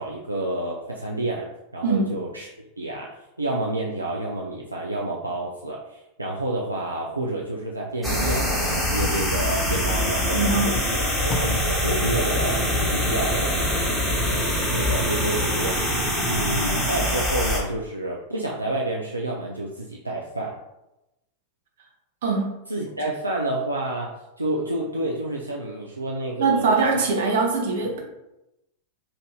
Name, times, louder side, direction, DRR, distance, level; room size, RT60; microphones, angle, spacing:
voice 1, 0.0-14.0 14.7-15.8 16.3-20.6 22.7-27.0, right 2 dB, 85° right, -2 dB, 0.3 m, -29 dB
voice 2, 1.8-2.1 10.3-10.8 22.2-22.5 26.4-28.0, right 4 dB, 55° right, 0 dB, 0.7 m, -22 dB
Packing tape duct tape, 7.9-9.6 10.3-10.4 10.7-13.7 14.1-14.3, left 3 dB, 35° left, 0.5 m, -40 dB
sound 1, 8.0-17.6, left 1 dB, ahead, 1.1 m, -24 dB
2.8 x 2.5 x 3.5 m, 0.91 s
figure-of-eight pair, 90°, 0 cm